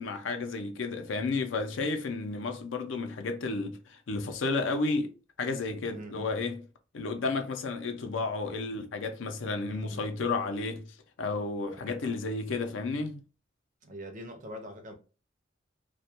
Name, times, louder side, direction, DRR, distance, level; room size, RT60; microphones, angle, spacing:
voice 1, 0.0-5.1 5.4-6.6 6.9-10.8 11.2-13.2, left 3 dB, 70° left, 0.5 m, -32 dB
voice 2, 5.9-6.3 9.7-10.1 11.8-12.2 13.8-14.9, equal, 40° right, 0.5 m, -44 dB
2.2 x 2.1 x 2.8 m
head